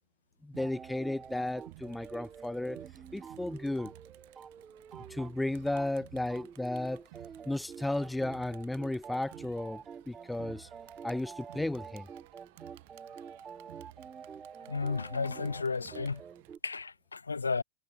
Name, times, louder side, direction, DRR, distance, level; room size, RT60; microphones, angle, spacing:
voice 1, 0.4-2.8 3.1-3.9 5.1-7.1 7.5-10.7 11.0-12.1, left 1 dB, 5° left, 0.4 m, -34 dB
Crowd, 0.5-16.6, right 22 dB, 50° right, 7.8 m, -56 dB
sound 1, 0.6-5.9 6.2-16.6, right 6 dB, 20° right, 5.1 m, -48 dB
voice 2, 14.7-16.2 16.6-17.6, left 4 dB, 75° left, 0.7 m, -33 dB
figure-of-eight pair, 90°, 0 cm